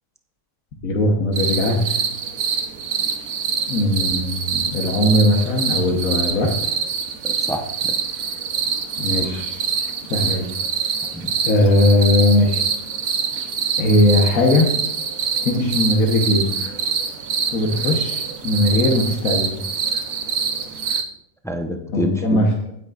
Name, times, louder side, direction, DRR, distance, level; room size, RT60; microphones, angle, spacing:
voice 1, 0.8-2.0 3.7-6.5 9.0-9.6 10.1-10.5 11.4-12.6 13.8-14.7 15.4-16.5 17.5-19.6 21.9-22.5, left 1 dB, 70° left, 0 dB, 1.6 m, -19 dB
sound 1, 1.3-21.0, right 6 dB, 85° right, 1.4 m, -25 dB
voice 2, 7.2-7.9 11.1-11.3 17.8-17.9 21.4-22.5, equal, 5° left, 4 dB, 0.6 m, -27 dB
15.5 x 9.1 x 2.5 m, 0.74 s
omnidirectional pair, 1.6 m